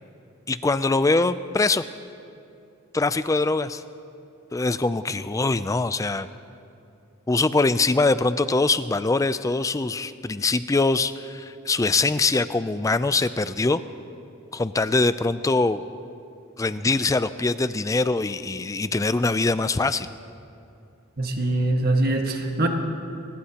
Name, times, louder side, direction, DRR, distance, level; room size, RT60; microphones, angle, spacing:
voice 1, 0.5-1.8 2.9-3.8 4.5-6.3 7.3-13.8 14.5-15.8 16.6-20.1, left 3 dB, 15° left, 13 dB, 0.3 m, -23 dB
voice 2, 21.2-22.7, right 2 dB, 45° right, 3 dB, 1.5 m, -23 dB
23.5 x 19.5 x 2.9 m, 2.6 s
head